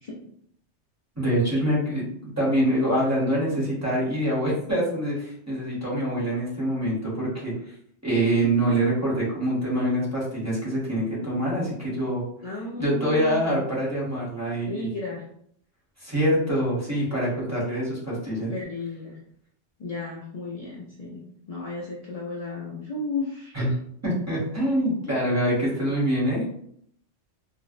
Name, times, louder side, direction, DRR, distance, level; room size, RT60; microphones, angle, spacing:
voice 1, 1.2-2.1 2.4-7.5 8.0-12.2 12.8-14.9 16.0-18.5 23.5-23.7 24.0-26.4, right 1 dB, 15° right, -7 dB, 0.7 m, -25 dB
voice 2, 12.4-13.6 14.6-15.3 18.5-19.2 19.8-23.6 25.7-25.9, left 3 dB, 70° left, -5 dB, 0.3 m, -34 dB
2.5 x 2.0 x 2.4 m, 0.67 s
omnidirectional pair, 1.2 m